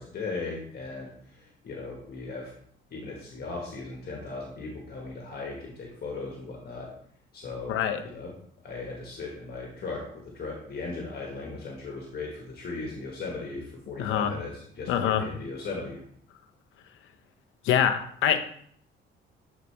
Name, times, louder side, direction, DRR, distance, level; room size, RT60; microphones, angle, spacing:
voice 1, 0.0-2.5 2.9-6.9 7.3-8.3 8.6-16.0, left 3 dB, 50° left, -1 dB, 1.5 m, -37 dB
voice 2, 7.7-8.0 14.0-14.3 14.9-15.3 17.6-18.4, left 9 dB, 85° left, 8 dB, 0.7 m, -24 dB
8.3 x 4.1 x 3.3 m, 0.64 s
cardioid pair, 90°, 20 cm